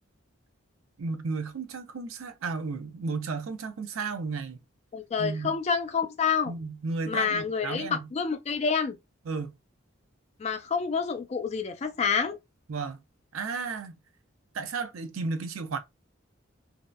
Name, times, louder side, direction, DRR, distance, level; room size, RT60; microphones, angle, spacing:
voice 1, 1.0-4.6 5.2-5.6 6.5-8.1 9.2-9.6 12.7-13.0 13.3-14.0 14.5-15.8, right 4 dB, 85° right, 0.5 m, -33 dB
voice 2, 4.9-6.5 7.1-9.0 10.4-12.4, left 6 dB, 30° left, 0.3 m, -28 dB
2.7 x 2.0 x 2.2 m
head